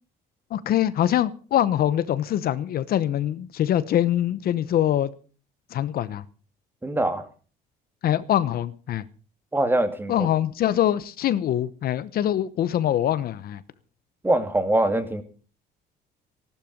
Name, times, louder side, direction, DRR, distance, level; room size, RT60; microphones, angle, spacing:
voice 1, 0.5-5.1 5.7-6.2 8.0-9.0 10.1-13.6, left 11 dB, 55° left, 15 dB, 0.9 m, -24 dB
voice 2, 6.8-7.3 9.5-10.3 14.2-15.2, right 1 dB, 10° right, 9 dB, 2.1 m, -23 dB
16.0 x 12.0 x 5.3 m, 0.39 s
cardioid pair, 120°, 18 cm